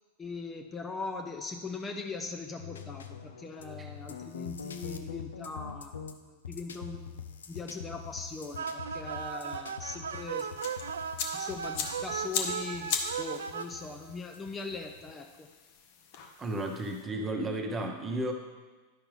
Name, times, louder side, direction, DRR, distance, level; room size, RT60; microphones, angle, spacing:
voice 1, 0.2-6.0 6.2-10.5 11.3-15.5, left 3 dB, 20° left, 4 dB, 0.6 m, -40 dB
sound 1, 2.6-15.1, left 7 dB, 70° left, 0.5 m, -45 dB
sound 2, 8.6-13.6, right 7 dB, 65° right, 0.4 m, -37 dB
sound 3, 10.6-17.0, left 5 dB, 50° left, 0.9 m, -39 dB
voice 2, 16.4-18.3, right 1 dB, 15° right, 2 dB, 1.1 m, -33 dB
10.5 x 5.8 x 3.5 m, 1.3 s
figure-of-eight pair, 90°, 0 cm